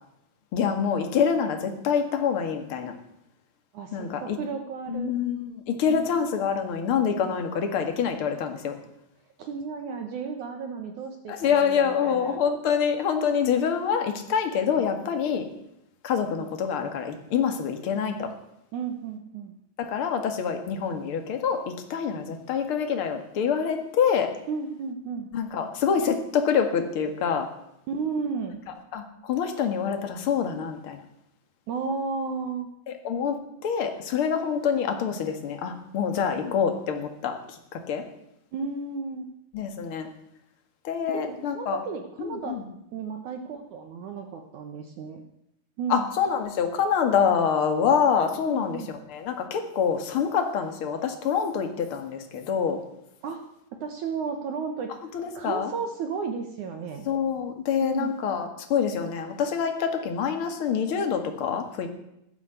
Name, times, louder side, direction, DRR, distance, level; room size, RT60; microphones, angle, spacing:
voice 1, 0.5-2.9 3.9-4.4 4.9-8.8 11.3-15.5 16.0-18.3 19.8-24.3 25.3-27.5 28.9-31.0 32.9-38.0 39.5-40.1 40.8-41.8 42.2-42.6 45.9-52.8 55.1-55.7 57.0-61.9, left 7 dB, 50° left, 5 dB, 1.6 m, -26 dB
voice 2, 3.7-5.1 5.9-6.1 9.4-12.4 18.7-19.5 24.5-25.3 27.9-28.6 31.7-32.7 38.5-39.3 41.1-42.6 42.9-45.2 45.8-46.1 48.4-48.9 53.2-53.4 53.8-54.9 55.4-57.1 57.8-58.1, right 5 dB, 70° right, 5 dB, 1.9 m, -33 dB
16.0 x 11.0 x 8.1 m, 0.81 s
omnidirectional pair, 5.0 m